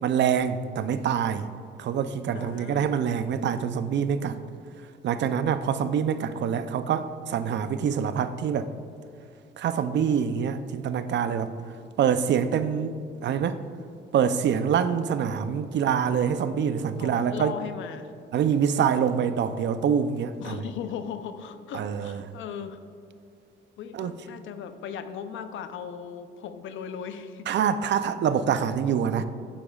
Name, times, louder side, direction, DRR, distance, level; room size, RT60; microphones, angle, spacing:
voice 1, 0.0-1.5 1.8-4.4 5.0-8.7 9.6-11.5 12.0-13.0 13.2-13.6 14.1-17.5 18.3-20.6 21.7-22.2 23.9-24.1 27.5-29.2, right 8 dB, 65° right, 11 dB, 0.5 m, -25 dB
voice 2, 2.3-2.9 17.0-18.1 20.4-22.8 23.8-27.5, left 8 dB, 80° left, 10 dB, 0.7 m, -37 dB
11.5 x 8.7 x 2.4 m, 2.5 s
cardioid pair, 90°, 20 cm